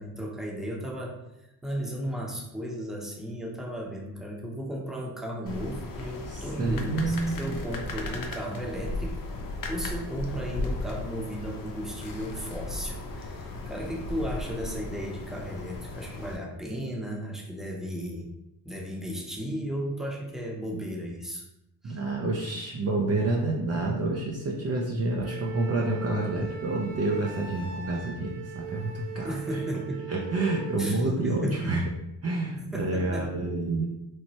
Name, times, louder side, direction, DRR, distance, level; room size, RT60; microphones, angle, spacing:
voice 1, 0.0-9.2 9.7-18.3 18.6-21.4 21.8-22.0 29.2-30.1 30.8-31.8 32.6-33.3, equal, ahead, -2 dB, 0.8 m, -35 dB
sound 1, 5.5-16.4, left 2 dB, 55° left, 0.6 m, -36 dB
voice 2, 6.3-7.6 21.8-29.6 30.1-31.8 32.2-33.8, right 2 dB, 40° right, -2 dB, 0.5 m, -28 dB
Wind instrument woodwind instrument, 25.2-31.0, right 7 dB, 85° right, 0.5 m, -40 dB
3.1 x 2.1 x 2.8 m, 0.86 s
supercardioid pair, 50°, 41 cm